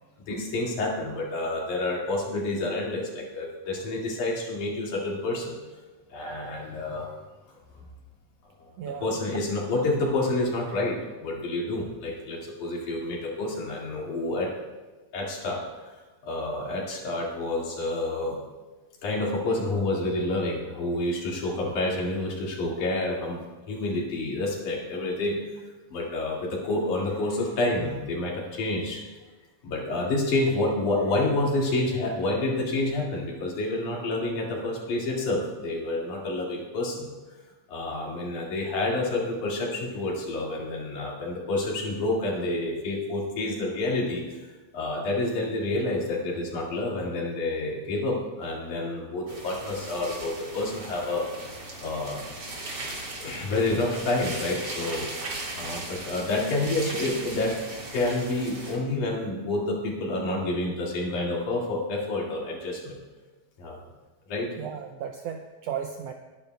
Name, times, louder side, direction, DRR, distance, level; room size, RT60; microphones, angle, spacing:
voice 1, 0.3-5.6 6.1-7.1 8.6-8.7 9.0-14.5 15.1-15.6 15.9-16.0 16.2-18.4 19.0-23.4 23.7-25.4 25.9-29.0 29.6-37.1 37.7-44.4 44.7-51.5 51.8-52.2 53.2-55.1 55.5-57.6 57.9-63.0 63.6-63.8 64.3-64.5, left 2 dB, 90° left, -3 dB, 3.8 m, -28 dB
voice 2, 8.8-9.2 53.7-53.9 64.6-66.1, right 8 dB, 80° right, 5 dB, 1.5 m, -35 dB
sound 1, 49.3-58.8, right 2 dB, 35° right, 2.6 m, -38 dB
21.5 x 10.5 x 2.3 m, 1.2 s
omnidirectional pair, 3.4 m